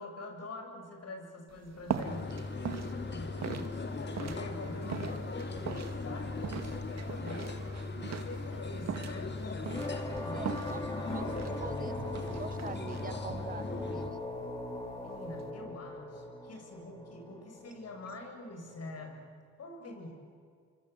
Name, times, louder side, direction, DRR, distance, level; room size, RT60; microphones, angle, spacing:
voice 1, 0.0-7.6 8.2-9.8 10.2-10.9 15.0-19.3 19.6-20.1, left 2 dB, 55° left, 4 dB, 7.2 m, -45 dB
sound 1, 1.5-15.5, right 7 dB, 60° right, 2.2 m, -42 dB
sound 2, 2.0-14.1, left 3 dB, 35° left, 2.4 m, -38 dB
sound 3, 9.7-19.3, left 1 dB, 15° left, 4.6 m, -42 dB
voice 2, 10.1-10.8 11.1-14.2, right 5 dB, 30° right, 15 dB, 0.9 m, -45 dB
27.0 x 25.0 x 8.3 m, 2.2 s
cardioid pair, 90°, 30 cm